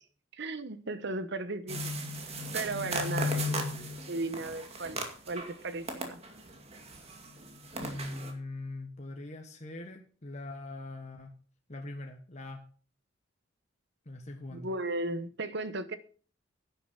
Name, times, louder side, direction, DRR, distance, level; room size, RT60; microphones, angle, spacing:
voice 1, 0.4-1.9 2.5-3.6 4.1-6.2 14.5-16.0, right 2 dB, 65° right, 1.1 m, -36 dB
sound 1, 1.7-5.5 5.8-8.3, left 1 dB, 35° right, 2.2 m, -36 dB
voice 2, 3.2-3.8 7.8-11.3 11.7-12.6 14.0-14.7, left 2 dB, 40° left, 1.4 m, -42 dB
11.0 x 9.3 x 5.7 m
head